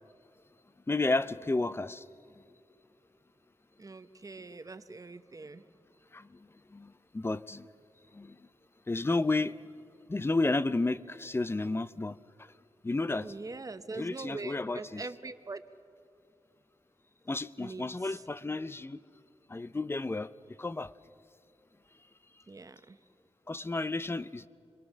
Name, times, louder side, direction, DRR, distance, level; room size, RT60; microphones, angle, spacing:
voice 1, 0.9-2.0 6.1-6.5 6.7-7.7 8.1-8.4 8.9-9.5 10.1-12.2 12.8-13.3 13.9-15.0 17.3-19.0 19.5-20.3 20.6-20.9 23.5-24.5, left 2 dB, 25° left, 15 dB, 0.5 m, -32 dB
voice 2, 3.8-5.6 13.2-15.6 17.6-18.2 22.5-23.0, right 3 dB, 35° right, 11 dB, 0.8 m, -42 dB
27.0 x 21.5 x 6.4 m, 2.4 s
wide cardioid pair, 110°, 10 cm